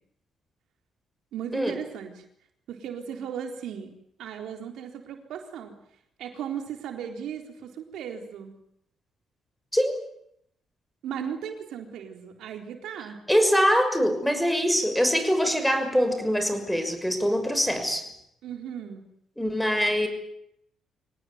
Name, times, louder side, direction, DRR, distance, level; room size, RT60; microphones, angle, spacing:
voice 1, 1.3-2.2 2.7-3.9 4.2-5.7 6.2-8.6 11.0-13.2 18.4-19.1, right 8 dB, 80° right, 4 dB, 4.0 m, -36 dB
voice 2, 13.3-18.1 19.4-20.1, equal, 5° left, 8 dB, 6.3 m, -23 dB
25.0 x 18.5 x 9.5 m, 0.74 s
cardioid pair, 90°, 0 cm